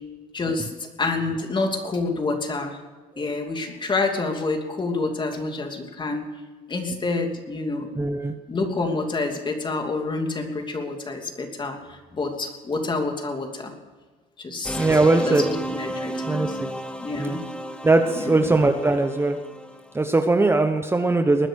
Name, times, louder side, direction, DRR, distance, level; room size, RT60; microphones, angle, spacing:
voice 1, 0.3-2.8 3.2-6.2 6.7-7.9 8.5-13.7 14.4-14.8 15.2-16.6 17.0-17.5 18.1-18.4, left 3 dB, 30° left, 4 dB, 2.9 m, -28 dB
voice 2, 7.9-8.3 14.8-15.5 16.3-16.5 17.2-17.4 17.8-19.4 19.9-21.5, right 2 dB, 15° right, 6 dB, 1.0 m, -20 dB
sound 1, 14.6-20.0, equal, 5° left, 1.2 m, -33 dB
20.0 x 10.5 x 6.5 m, 1.4 s
cardioid pair, 110°, 17 cm